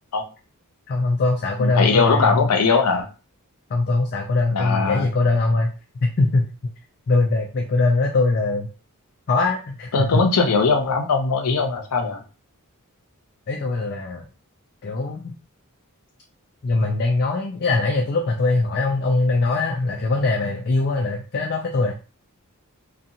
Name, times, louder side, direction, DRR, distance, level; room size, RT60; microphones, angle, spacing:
voice 1, 0.9-2.5 3.7-5.7 6.0-6.5 7.1-8.7 9.3-10.2 13.5-14.2 14.8-15.3 16.6-21.9, left 3 dB, 45° left, 1 dB, 0.4 m, -21 dB
voice 2, 1.6-3.1 4.5-5.1 9.9-12.2, left 4 dB, 90° left, 4 dB, 0.6 m, -20 dB
2.8 x 2.3 x 2.6 m, 0.34 s
head